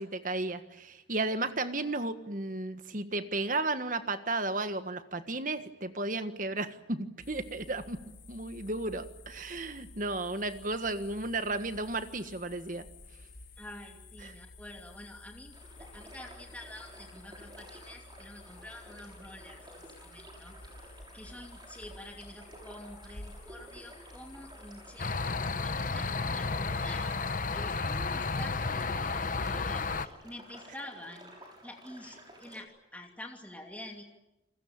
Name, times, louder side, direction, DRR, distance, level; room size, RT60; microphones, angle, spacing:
voice 1, 0.0-8.0 8.3-12.8 14.2-14.3, right 2 dB, 45° right, 10 dB, 1.6 m, -34 dB
sound 1, 7.2-25.6, left 2 dB, 75° left, 5.3 m, -52 dB
voice 2, 13.6-15.5 15.8-19.6 20.0-20.5 21.1-25.1 25.5-27.2 27.5-31.3 31.6-32.7 32.9-34.0, left 1 dB, 10° left, 2 dB, 2.6 m, -47 dB
sound 2, 15.5-32.6, right 1 dB, 25° right, 6.1 m, -52 dB
sound 3, 25.0-30.1, left 4 dB, 45° left, 0.9 m, -32 dB
29.0 x 20.5 x 8.9 m, 0.94 s
head